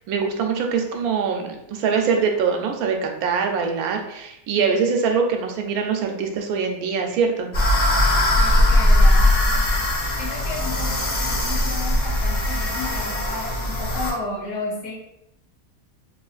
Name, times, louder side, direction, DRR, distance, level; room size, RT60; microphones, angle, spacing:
voice 1, 0.0-7.5, right 5 dB, 80° right, 3 dB, 1.0 m, -23 dB
sound 1, 7.5-14.1, left 1 dB, 55° left, 1.1 m, -20 dB
voice 2, 8.4-9.5 10.1-14.9, left 3 dB, 75° left, -4 dB, 1.3 m, -33 dB
3.0 x 2.8 x 2.4 m, 0.82 s
omnidirectional pair, 1.5 m